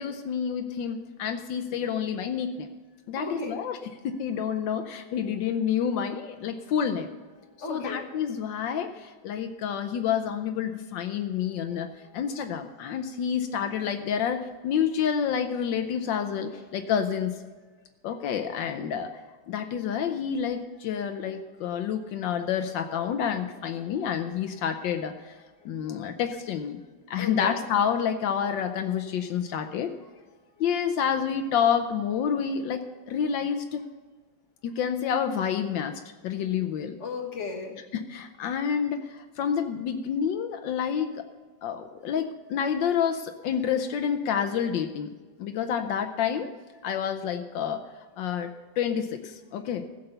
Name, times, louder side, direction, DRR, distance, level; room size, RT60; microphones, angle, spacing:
voice 1, 0.0-2.7 3.1-3.7 4.0-7.1 7.7-11.9 12.1-17.4 18.0-19.1 19.5-25.4 25.6-26.8 27.1-29.9 30.6-33.8 34.6-37.0 37.9-41.3 41.6-45.1 45.4-46.5 46.8-47.8 48.2-49.9, left 8 dB, 80° left, 7 dB, 1.4 m, -28 dB
voice 2, 3.2-4.2 4.5-4.6 5.0-5.3 7.4-8.1 11.5-13.3 16.5-16.9 20.4-20.6 21.1-21.7 23.6-24.7 25.4-25.8 27.1-27.6 28.4-29.7 30.3-30.7 32.8-33.4 37.0-37.8 42.0-42.1 42.6-42.7 43.6-43.7 45.3-45.6 46.8-46.9, left 3 dB, 40° left, 1 dB, 1.9 m, -42 dB
15.5 x 6.9 x 6.7 m, 1.3 s
omnidirectional pair, 2.0 m